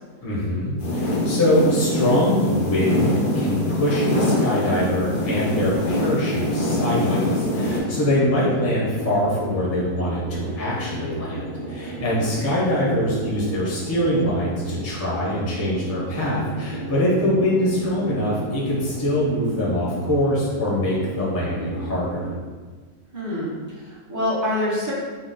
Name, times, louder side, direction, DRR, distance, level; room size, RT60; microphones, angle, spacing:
voice 1, 0.2-11.4 11.7-22.2, left 1 dB, 20° left, -6 dB, 0.4 m, -23 dB
sound 1, 0.8-7.8, left 1 dB, 85° left, 0.4 m, -24 dB
sound 2, 4.7-22.3, right 1 dB, 75° right, 1.4 m, -34 dB
voice 2, 23.1-24.9, left 1 dB, 15° right, -8 dB, 0.7 m, -26 dB
4.0 x 2.1 x 3.8 m, 1.4 s
omnidirectional pair, 1.8 m